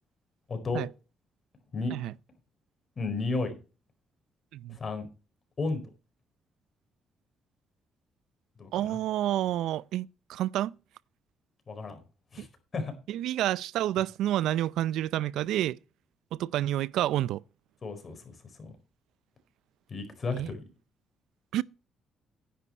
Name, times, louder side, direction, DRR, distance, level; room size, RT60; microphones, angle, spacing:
voice 1, 0.5-0.8 1.7-1.9 3.0-3.5 4.7-5.1 5.6-5.8 8.6-9.0 11.7-12.0 12.3-12.5 12.7-12.9 17.8-18.7 19.9-20.6, left 3 dB, 40° left, 4.5 m, -33 dB
voice 2, 8.7-10.7 12.4-12.5 13.1-15.8 16.3-17.4 20.3-20.5 21.5-21.6, right 13 dB, 85° right, 0.4 m, -29 dB
11.0 x 10.0 x 4.3 m
cardioid pair, 90°, 0 cm